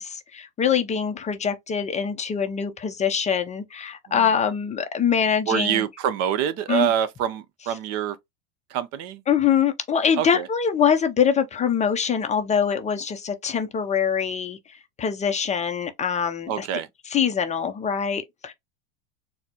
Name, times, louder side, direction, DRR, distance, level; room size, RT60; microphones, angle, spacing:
voice 1, 0.0-5.8 6.7-6.9 9.3-16.7 17.1-18.5, left 7 dB, 20° left, 0.5 m, -24 dB
voice 2, 5.5-8.2 8.7-9.2 10.2-10.5 16.5-16.9, right 9 dB, 45° right, 0.6 m, -26 dB
4.1 x 2.0 x 2.7 m
hypercardioid pair, 105°, 35 cm